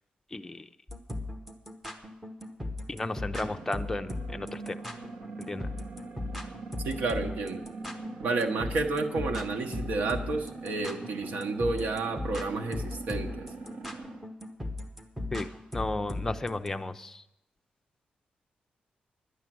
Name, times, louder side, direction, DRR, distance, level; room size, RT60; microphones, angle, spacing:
voice 1, 0.3-0.7 2.9-4.8 5.5-5.7 15.3-17.2, left 2 dB, 15° left, 7 dB, 0.5 m, -34 dB
sound 1, 0.9-16.7, left 2 dB, 5° right, 1.0 m, -37 dB
sound 2, 3.4-14.3, right 3 dB, 60° right, 1.5 m, -42 dB
voice 2, 6.8-7.6 8.2-13.5, right 3 dB, 85° right, 4 dB, 1.1 m, -31 dB
11.0 x 10.0 x 7.6 m, 0.87 s
wide cardioid pair, 165°, 3 cm